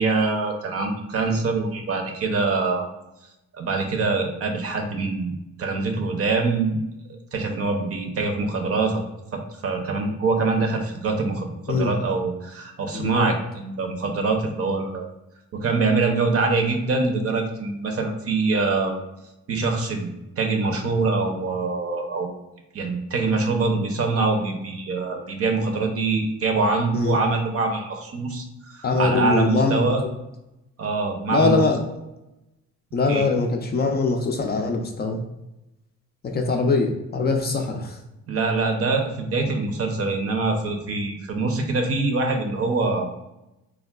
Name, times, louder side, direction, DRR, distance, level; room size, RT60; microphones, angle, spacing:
voice 1, 0.0-2.9 3.5-6.8 7.3-9.0 9.3-15.1 15.5-19.0 19.5-20.1 20.4-22.3 22.7-30.0 30.8-31.6 33.1-33.3 38.3-43.1, right 3 dB, 50° right, 3 dB, 0.6 m, -24 dB
voice 2, 12.9-13.3 26.9-27.2 28.8-29.9 31.3-31.8 32.9-35.2 36.2-38.0, left 3 dB, 35° left, 3 dB, 0.4 m, -22 dB
3.4 x 2.2 x 2.2 m, 0.93 s
cardioid pair, 90°, 30 cm